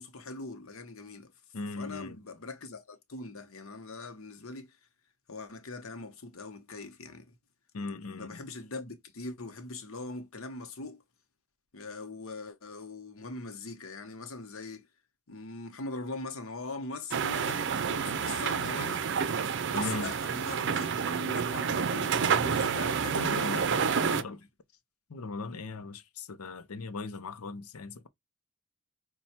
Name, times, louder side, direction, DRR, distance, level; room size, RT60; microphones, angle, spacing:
voice 1, 0.0-1.3 1.7-4.8 5.3-7.3 8.2-11.0 11.7-14.9 15.3-19.1 19.7-24.4, left 3 dB, 65° left, 0.9 m, -42 dB
voice 2, 1.5-2.2 7.7-8.4 19.7-20.1 23.1-24.4 25.1-28.1, left 3 dB, 90° left, 0.7 m, -38 dB
sound 1, 17.1-24.2, right 6 dB, 55° right, 0.5 m, -29 dB
5.4 x 2.3 x 4.2 m
head